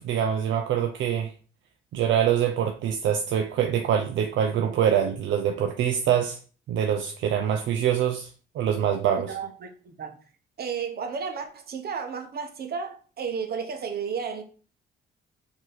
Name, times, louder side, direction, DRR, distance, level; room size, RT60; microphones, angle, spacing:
voice 1, 0.0-1.3 1.9-6.4 6.7-9.3, right 9 dB, 70° right, 0.5 m, -24 dB
voice 2, 9.2-10.2 10.6-14.4, right 6 dB, 50° right, 1.0 m, -33 dB
4.7 x 2.9 x 3.9 m
cardioid pair, 90°, 20 cm